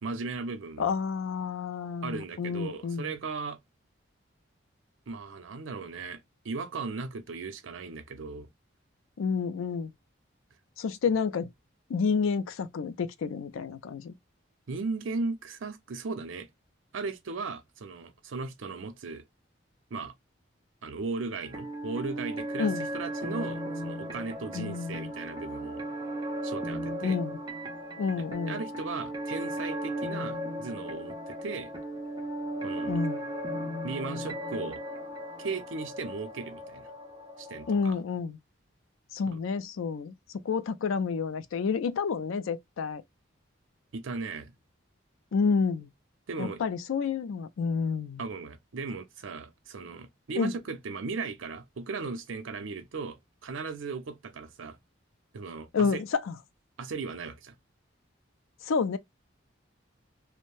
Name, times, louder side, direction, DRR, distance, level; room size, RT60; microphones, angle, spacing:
voice 1, 0.0-0.9 2.0-3.6 5.1-8.5 14.7-16.5 16.9-19.2 19.9-20.1 20.8-25.8 26.4-27.2 28.2-31.7 32.6-33.0 33.8-34.8 35.4-36.9 37.4-37.9 43.9-44.5 46.3-46.6 48.2-54.8 55.3-56.0 56.8-57.5, right 4 dB, 75° right, 0.5 m, -37 dB
voice 2, 0.8-3.1 9.2-9.9 10.8-11.5 11.9-14.1 22.6-22.9 24.5-25.1 27.0-27.4 28.0-28.6 32.9-33.2 37.7-38.4 39.1-40.1 40.4-43.0 45.3-45.9 46.4-48.2 50.3-50.5 55.7-56.4 58.6-59.0, left 5 dB, 90° left, 0.4 m, -29 dB
sound 1, 21.4-37.8, right 1 dB, 20° right, 0.6 m, -36 dB
2.6 x 2.1 x 3.0 m
head